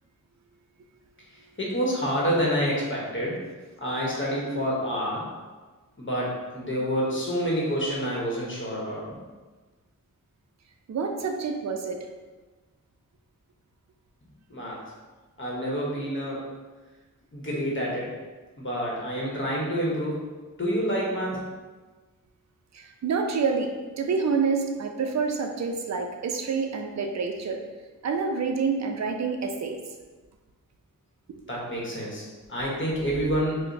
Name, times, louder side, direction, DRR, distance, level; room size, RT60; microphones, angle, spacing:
voice 1, 1.6-3.4 3.8-5.2 6.0-9.0 14.5-14.8 15.4-16.4 17.3-18.1 18.6-20.2 20.6-21.4 31.5-32.2 32.5-33.6, equal, 35° left, -4 dB, 1.0 m, -28 dB
voice 2, 10.9-12.0 22.7-23.7 24.0-27.6 28.0-29.8, right 5 dB, 55° right, 4 dB, 0.5 m, -27 dB
4.8 x 2.1 x 2.6 m, 1.3 s
wide cardioid pair, 65°, 34 cm